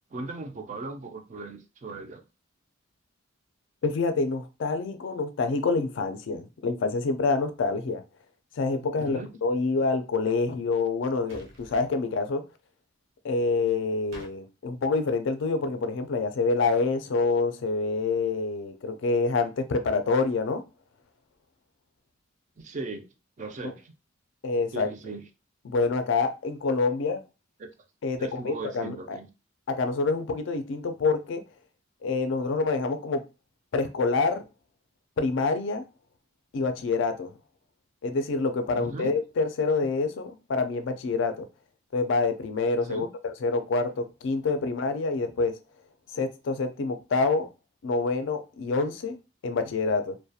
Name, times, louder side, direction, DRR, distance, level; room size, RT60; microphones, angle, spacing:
voice 1, 0.1-2.2 9.0-9.3 22.6-23.1 23.4-23.9 24.7-25.2 27.6-27.7 28.2-29.3 38.7-39.1 42.8-43.1, right 3 dB, 35° right, 0.3 m, -38 dB
voice 2, 3.8-8.0 8.6-12.4 13.2-20.6 24.4-24.9 25.7-27.2 28.0-29.2 29.7-31.4 32.0-33.2 33.7-34.4 35.2-35.8 36.5-37.3 38.0-41.5 41.9-43.1 43.4-45.5 46.1-47.5 47.8-49.2 49.4-50.2, left 3 dB, 60° left, 0.3 m, -27 dB
sound 1, 11.3-11.8 14.1-14.3, left 1 dB, 75° right, 0.8 m, -46 dB
2.3 x 2.1 x 2.7 m
head